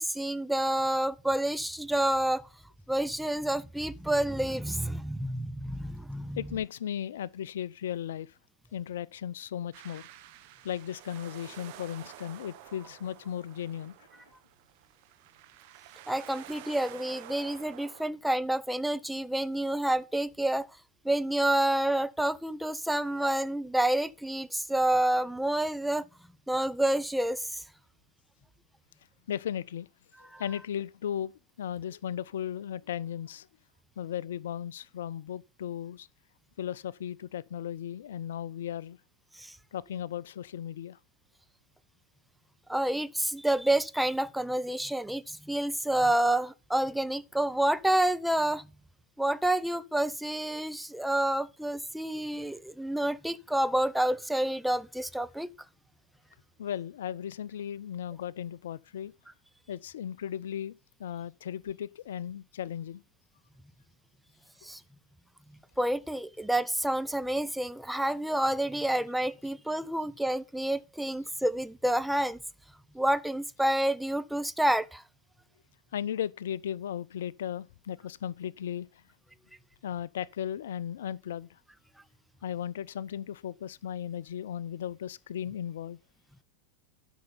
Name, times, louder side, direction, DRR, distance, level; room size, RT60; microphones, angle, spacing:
voice 1, 0.0-2.5 2.9-6.4 16.1-20.7 21.0-26.1 26.5-27.6 30.3-30.4 39.3-39.6 42.7-48.7 49.2-55.5 64.6-64.8 65.8-72.4 72.9-75.0, right 1 dB, ahead, 0.5 m, -28 dB
voice 2, 6.4-8.3 8.7-10.1 10.6-13.9 29.3-29.9 30.4-31.3 31.6-33.5 34.0-36.1 36.6-39.0 39.7-41.0 56.6-59.1 59.7-63.0 75.9-78.9 79.8-81.6 82.4-86.0, left 10 dB, 60° left, 0.4 m, -36 dB
sound 1, 9.7-18.1, right 13 dB, 50° right, 1.1 m, -50 dB
12.0 x 5.5 x 5.6 m
figure-of-eight pair, 90°, 0 cm